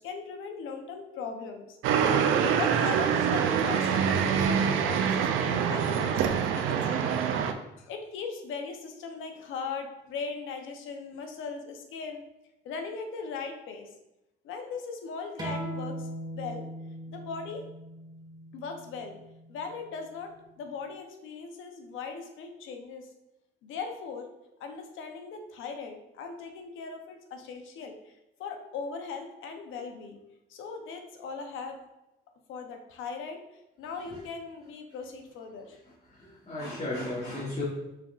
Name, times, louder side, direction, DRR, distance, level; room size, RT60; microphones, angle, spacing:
voice 1, 0.0-2.0 2.5-7.2 7.5-12.2 12.6-13.9 14.4-16.1 16.3-16.6 17.1-17.6 18.5-19.2 19.5-23.1 23.6-24.3 24.6-30.2 30.5-31.8 32.5-33.4 33.8-35.8, left 5 dB, 85° left, 4 dB, 0.7 m, -39 dB
sound 1, 1.8-7.5, right 7 dB, 90° right, 0.4 m, -25 dB
sound 2, 15.4-20.6, right 1 dB, 20° right, 1.3 m, -40 dB
voice 2, 35.7-37.6, left 2 dB, 30° left, -5 dB, 1.2 m, -36 dB
5.7 x 3.7 x 2.4 m, 0.92 s
cardioid pair, 90°, 20 cm